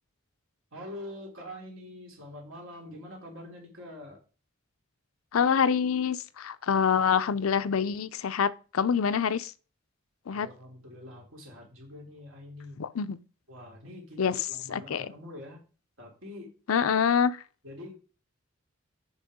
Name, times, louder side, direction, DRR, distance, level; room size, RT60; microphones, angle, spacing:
voice 1, 0.7-4.2 10.3-12.8 13.5-15.6 16.0-16.5 17.6-17.9, left 1 dB, 70° right, 3.5 m, -44 dB
voice 2, 5.3-9.5 10.3-10.5 12.8-13.2 14.2-14.4 14.7-15.1 16.7-17.4, left 7 dB, 85° left, 0.5 m, -26 dB
8.1 x 5.5 x 5.0 m
head